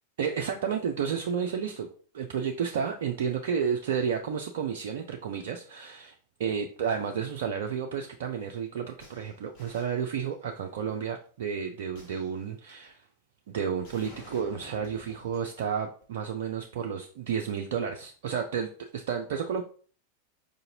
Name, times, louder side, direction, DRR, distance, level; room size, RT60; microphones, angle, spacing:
voice 1, 0.2-6.1 6.4-13.0 13.5-19.6, right 7 dB, 55° right, 4 dB, 0.4 m, -31 dB
sound 1, 9.0-10.6 11.9-12.9 13.8-15.6 16.0-16.1, left 2 dB, 40° left, 1.5 m, -52 dB
4.8 x 2.6 x 2.8 m, 0.42 s
figure-of-eight pair, 90°, 0 cm